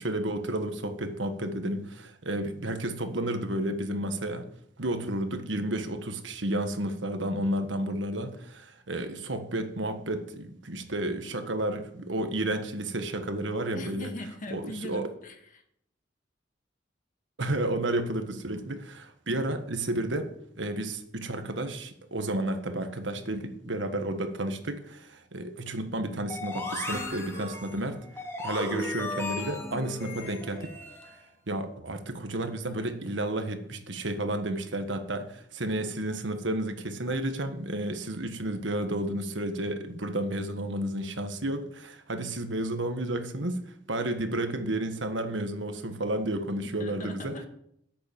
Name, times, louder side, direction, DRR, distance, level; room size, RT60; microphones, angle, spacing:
voice 1, 0.0-4.4 4.8-14.1 14.5-15.1 17.4-20.3 20.5-28.0 28.4-30.7 31.5-47.3, right 1 dB, 80° right, 7 dB, 1.5 m, -31 dB
voice 2, 13.7-15.6 46.8-47.5, left 1 dB, 45° left, 5 dB, 2.0 m, -40 dB
sound 1, 26.3-31.2, left 2 dB, 15° left, 2.6 m, -36 dB
10.5 x 8.5 x 7.0 m, 0.72 s
head